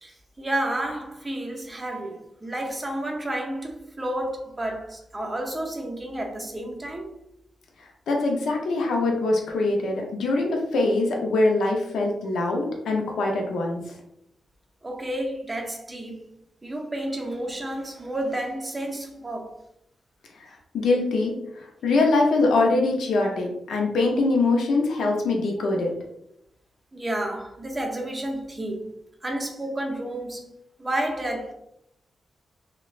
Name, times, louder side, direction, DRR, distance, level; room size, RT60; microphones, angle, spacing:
voice 1, 0.0-7.2 14.8-16.2 16.6-19.6 26.9-28.9 29.2-30.5 30.8-31.5, right 1 dB, 20° right, 0.5 m, -31 dB
voice 2, 8.1-13.8 20.4-25.9, left 2 dB, 85° left, 0.5 m, -23 dB
3.0 x 2.1 x 2.3 m
wide cardioid pair, 130°, 0 cm